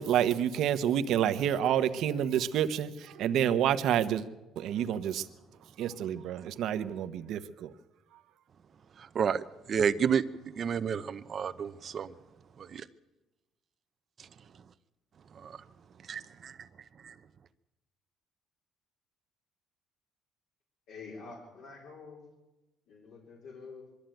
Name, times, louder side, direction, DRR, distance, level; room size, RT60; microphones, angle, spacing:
voice 1, 0.0-4.3 4.6-5.3 5.8-7.7, right 10 dB, 60° right, 10 dB, 1.0 m, -28 dB
voice 2, 9.7-10.2 10.6-12.1 12.7-12.8 15.4-15.5 16.1-16.5 17.0-17.1, right 7 dB, 35° right, 13 dB, 0.7 m, -30 dB
voice 3, 20.9-22.2 22.9-23.9, left 4 dB, 60° left, -2 dB, 4.3 m, -47 dB
23.0 x 13.5 x 9.1 m, 1.0 s
cardioid pair, 155°, 0 cm